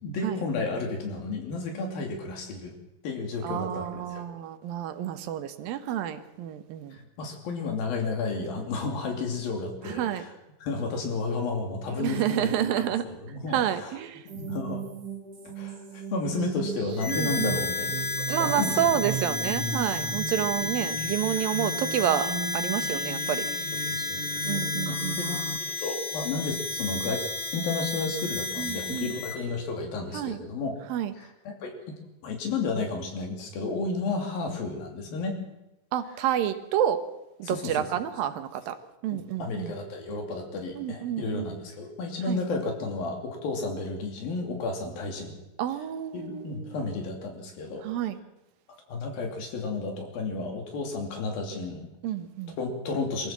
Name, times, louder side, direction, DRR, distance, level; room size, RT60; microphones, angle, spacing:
voice 1, 0.0-2.7 3.0-4.2 6.9-10.3 10.6-14.0 14.2-14.8 15.6-19.0 23.7-25.4 25.8-27.2 27.5-30.7 31.2-31.7 32.2-35.4 37.4-37.9 39.1-45.4 46.1-47.9 48.9-51.9 52.5-53.3, left 3 dB, 90° left, 3 dB, 4.7 m, -32 dB
voice 2, 3.4-7.0 9.9-10.2 12.0-13.0 13.5-14.2 17.1-17.6 18.3-22.3 22.5-23.5 24.4-25.2 28.6-29.1 30.1-30.4 30.9-31.1 35.9-37.0 37.4-38.8 39.0-39.7 40.7-41.6 42.3-42.4 45.6-46.9 47.8-48.2 52.0-52.6, right 10 dB, 85° right, 10 dB, 2.9 m, -29 dB
sound 1, 14.3-25.6, right 4 dB, 40° right, 1.6 m, -36 dB
Harmonica, 17.0-29.4, left 3 dB, 35° left, 4.3 m, -32 dB
23.5 x 14.5 x 7.5 m, 0.95 s
omnidirectional pair, 4.0 m